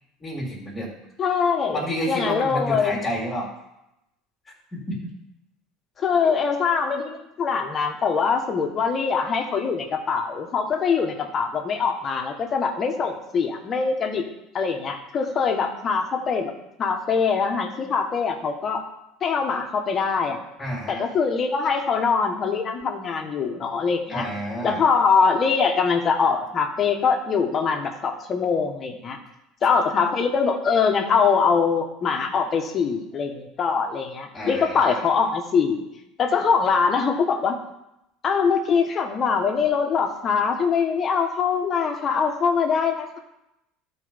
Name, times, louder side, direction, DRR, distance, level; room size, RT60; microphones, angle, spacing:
voice 1, 0.2-0.9 1.7-3.5 4.7-5.0 6.2-6.3 20.6-21.0 24.1-24.8 34.3-35.0, equal, 20° left, -6 dB, 2.0 m, -30 dB
voice 2, 1.2-3.0 6.0-14.2 14.5-16.5 16.8-18.8 19.2-20.4 20.9-24.3 24.6-29.2 29.6-35.8 36.2-37.6 38.2-43.2, left 5 dB, 35° left, 4 dB, 1.2 m, -23 dB
12.0 x 4.5 x 5.1 m, 0.87 s
supercardioid pair, 120°, 0 cm